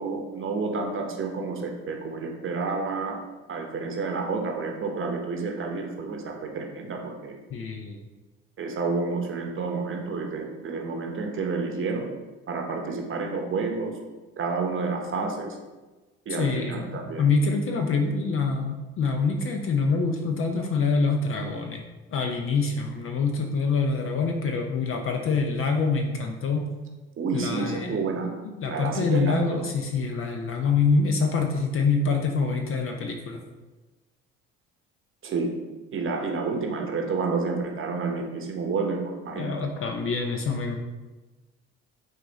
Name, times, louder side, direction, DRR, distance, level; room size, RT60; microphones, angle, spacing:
voice 1, 0.0-3.2 3.5-7.4 8.6-12.1 12.5-14.0 14.4-15.6 16.3-17.2 27.2-28.3 28.7-29.7 35.2-35.5 35.9-39.5, right 4 dB, 40° right, 2 dB, 0.8 m, -30 dB
voice 2, 7.5-8.0 16.4-21.8 22.1-26.7 27.3-28.0 28.6-33.4 39.3-40.8, left 4 dB, 45° left, 3 dB, 0.6 m, -25 dB
4.5 x 2.4 x 3.9 m, 1.2 s
hypercardioid pair, 65°, 30 cm